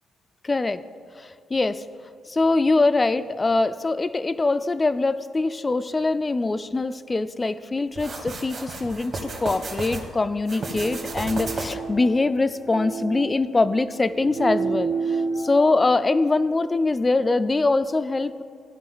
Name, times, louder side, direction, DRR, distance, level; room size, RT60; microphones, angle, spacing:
voice 1, 0.4-0.8 1.2-1.8 2.3-18.4, left 3 dB, 25° left, 13 dB, 0.3 m, -23 dB
sound 1, 8.0-10.0 10.4-11.9, right 3 dB, 55° right, 1.9 m, -33 dB
sound 2, 10.6-15.8, right 4 dB, 80° right, 1.1 m, -31 dB
15.0 x 5.1 x 4.0 m, 2.3 s
cardioid pair, 90°, 0 cm